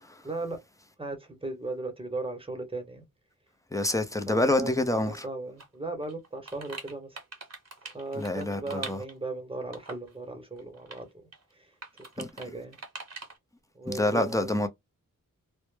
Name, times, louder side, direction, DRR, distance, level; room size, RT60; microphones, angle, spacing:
voice 1, 0.2-0.6 1.0-3.0 4.3-7.2 7.8-11.3 11.6-11.7 12.2-12.8 13.7-14.5, right 2 dB, 15° right, 0.8 m, -37 dB
voice 2, 3.7-5.2 8.2-9.0 12.2-12.3 13.9-14.7, left 1 dB, 10° left, 0.4 m, -27 dB
sound 1, 5.6-5.7 6.0-9.3 9.7-10.1 10.6-11.0 11.3-11.4 11.8-12.5 12.7-13.4, right 3 dB, 45° right, 0.9 m, -43 dB
2.1 x 2.0 x 3.1 m
wide cardioid pair, 55°, 35 cm